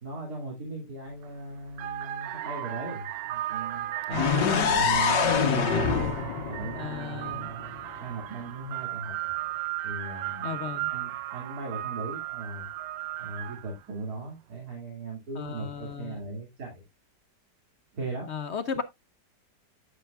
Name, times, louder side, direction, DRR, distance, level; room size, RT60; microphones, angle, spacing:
voice 1, 0.0-6.1 6.5-9.1 9.8-12.7 13.2-16.8 17.9-18.3, right 3 dB, 60° right, 3.1 m, -38 dB
sound 1, 1.1-1.3 1.7-13.8, right 13 dB, 80° right, 1.3 m, -36 dB
sound 2, 4.1-8.0, left 6 dB, 85° left, 1.8 m, -26 dB
voice 2, 4.1-4.7 6.7-7.5 10.4-10.9 15.4-16.2 18.3-18.8, left 7 dB, 60° left, 0.7 m, -35 dB
9.9 x 7.8 x 2.4 m
omnidirectional pair, 1.9 m